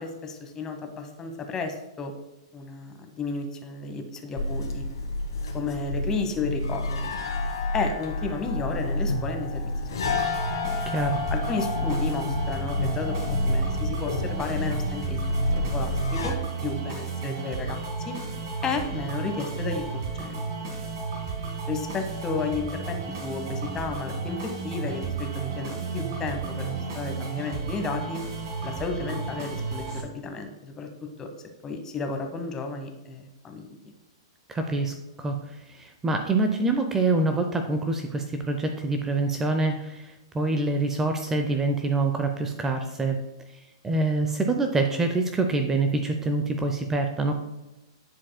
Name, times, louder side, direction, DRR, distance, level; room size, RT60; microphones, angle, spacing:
voice 1, 0.0-2.1 2.5-4.9 5.5-7.1 7.7-10.2 11.3-18.2 18.6-19.9 20.1-20.5 21.7-28.2 28.6-31.3 31.6-33.7, left 4 dB, 20° left, 5 dB, 1.0 m, -33 dB
sound 1, 4.3-16.3, left 2 dB, 70° left, 1.7 m, -29 dB
sound 2, 10.0-30.0, right 4 dB, 55° right, 1.7 m, -33 dB
voice 2, 10.9-11.2 34.5-43.2 43.8-47.3, right 3 dB, 15° right, 5 dB, 0.6 m, -26 dB
10.0 x 4.7 x 2.2 m, 0.97 s
figure-of-eight pair, 110°, 3 cm